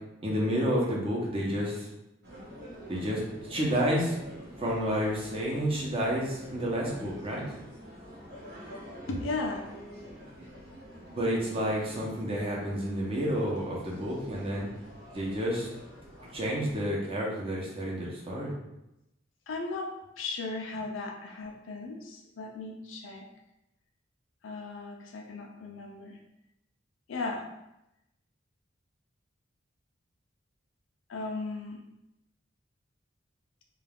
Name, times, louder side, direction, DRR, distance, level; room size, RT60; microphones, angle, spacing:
voice 1, 0.2-1.9 2.9-7.5 11.1-14.7 15.1-15.7 16.3-18.5, equal, 30° right, -4 dB, 0.7 m, -30 dB
sound 1, 2.2-16.9, equal, 60° right, 0.8 m, -47 dB
voice 2, 9.1-9.7 19.5-23.2 24.4-26.2 27.1-27.4 31.1-31.8, left 3 dB, 85° left, 1 dB, 0.4 m, -36 dB
2.4 x 2.3 x 3.4 m, 0.89 s
head